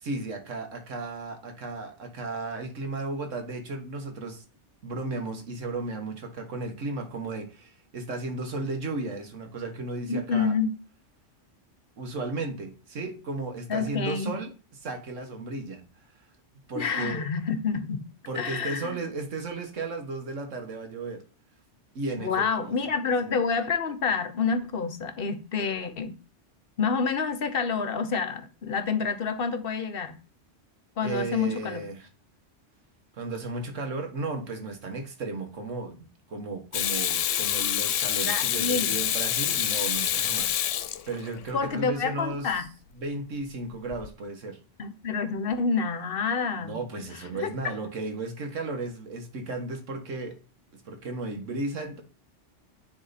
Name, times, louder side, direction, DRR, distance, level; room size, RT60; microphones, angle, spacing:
voice 1, 0.0-4.4 4.8-10.6 12.0-14.5 14.8-16.1 16.7-17.3 18.3-21.2 22.0-22.8 23.2-23.4 31.0-32.1 33.1-40.6 41.1-42.6 43.0-44.6 46.5-50.4 50.7-52.0, right 3 dB, 90° right, 1.7 m, -34 dB
voice 2, 10.1-10.7 13.7-14.4 16.8-18.0 18.4-19.0 22.2-26.2 26.8-30.2 31.0-31.8 38.3-39.0 41.5-42.7 44.8-46.7 47.4-47.5, left 5 dB, 55° left, 0.9 m, -28 dB
Water tap faucet / Sink (filling or washing), 36.7-41.5 43.9-44.1, left 10 dB, 85° left, 1.0 m, -27 dB
9.8 x 3.6 x 4.1 m
omnidirectional pair, 1.3 m